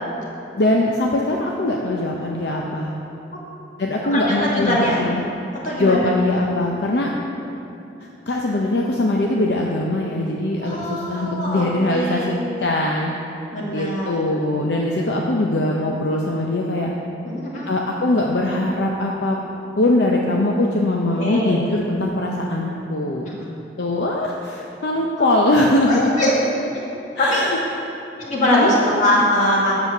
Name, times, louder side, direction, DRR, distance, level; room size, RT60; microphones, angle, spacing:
voice 1, 0.6-3.0 3.8-5.2 5.8-7.1 8.3-13.1 13.7-16.9 17.7-19.4 19.8-23.3 23.8-26.1 27.2-27.6 28.5-28.7, left 1 dB, 65° left, -1 dB, 0.7 m, -21 dB
voice 2, 4.0-5.0 5.6-6.1 10.6-12.4 13.5-14.1 17.2-17.7 21.2-21.6 25.2-25.3 25.8-26.3 27.2-27.5 28.2-29.7, left 1 dB, 40° left, -5 dB, 2.0 m, -22 dB
8.1 x 7.0 x 6.0 m, 3.0 s
head